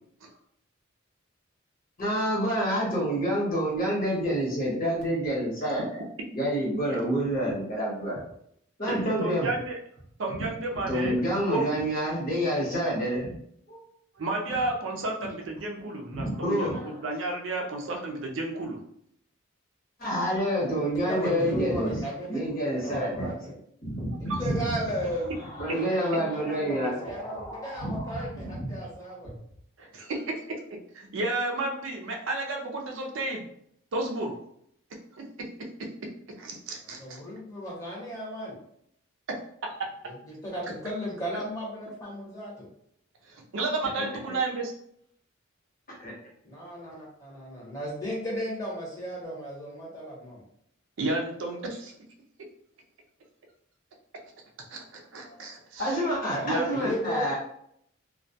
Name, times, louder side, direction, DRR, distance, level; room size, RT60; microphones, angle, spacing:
voice 1, 2.0-6.0 6.3-8.2 8.8-9.5 10.9-13.3 13.7-13.8 16.1-16.9 20.0-21.9 22.3-23.3 23.8-24.6 25.6-28.2 28.5-28.7 44.0-44.1 45.9-46.1 55.8-57.4, equal, 40° left, -5 dB, 0.9 m, -28 dB
voice 2, 8.9-9.8 10.2-11.2 11.5-11.6 14.2-18.8 24.3-24.4 29.8-30.2 30.7-33.5 33.9-34.3 35.2-35.3 36.4-37.2 39.3-39.4 39.6-39.9 43.3-44.7 51.0-51.9 54.7-56.0 56.4-56.7, right 2 dB, 60° right, 1 dB, 0.4 m, -32 dB
voice 3, 21.1-23.5 24.2-29.3 37.0-38.6 40.0-42.7 46.4-50.4 56.3-57.4, equal, 15° left, -6 dB, 0.8 m, -35 dB
2.2 x 2.1 x 2.6 m, 0.70 s
head